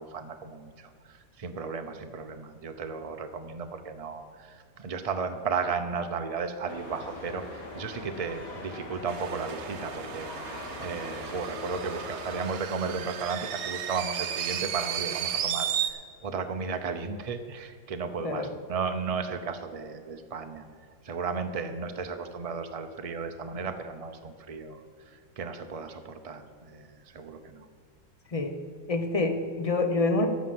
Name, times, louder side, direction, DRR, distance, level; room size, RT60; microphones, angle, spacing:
voice 1, 0.0-20.6 21.0-27.7, right 5 dB, 50° right, 7 dB, 0.4 m, -35 dB
sound 1, 6.7-12.5, left 2 dB, 55° left, 2.1 m, -41 dB
sound 2, 9.1-15.9, right 9 dB, 75° right, 1.3 m, -34 dB
voice 2, 28.9-30.3, left 3 dB, 35° left, 6 dB, 0.6 m, -27 dB
14.5 x 5.7 x 7.6 m, 2.1 s
omnidirectional pair, 1.8 m